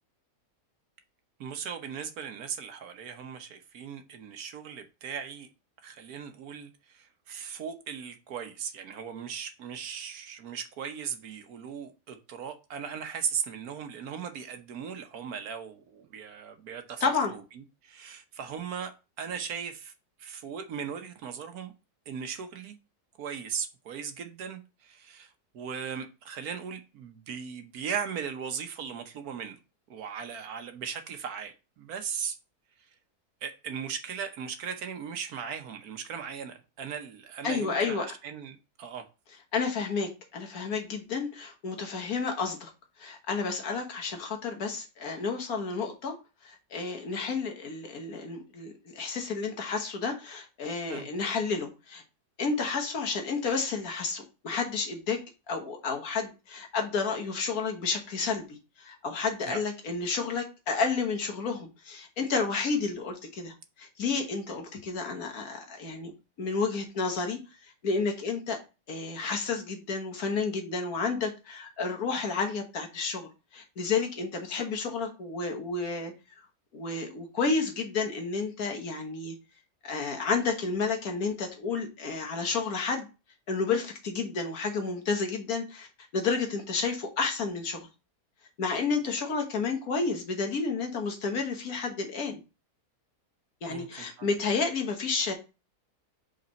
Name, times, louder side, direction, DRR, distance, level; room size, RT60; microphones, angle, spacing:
voice 1, 1.4-5.5 5.8-17.0 17.3-17.4 17.8-18.9 19.2-19.9 20.2-21.7 22.1-22.8 23.2-29.6 29.9-32.4 33.4-39.1 50.9-51.1 59.5-59.6 93.7-94.3, right 7 dB, 70° right, 1.3 m, -38 dB
voice 2, 17.0-17.3 37.4-38.0 39.5-42.7 43.0-46.1 46.4-52.0 52.4-55.2 55.5-66.1 66.4-68.6 68.9-76.1 76.7-79.4 79.8-83.1 83.5-87.9 88.6-92.4 93.6-95.3, left 4 dB, 65° left, 1.6 m, -31 dB
5.2 x 4.0 x 5.2 m
omnidirectional pair, 1.7 m